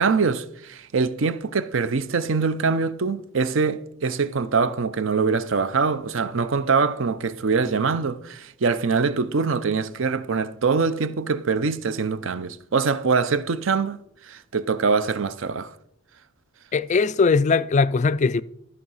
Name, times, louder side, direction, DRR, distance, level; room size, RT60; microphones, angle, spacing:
voice 1, 0.0-15.7, right 4 dB, 60° right, 0.6 m, -23 dB
voice 2, 16.7-18.4, left 4 dB, 35° left, 0.3 m, -20 dB
13.0 x 5.5 x 5.5 m
head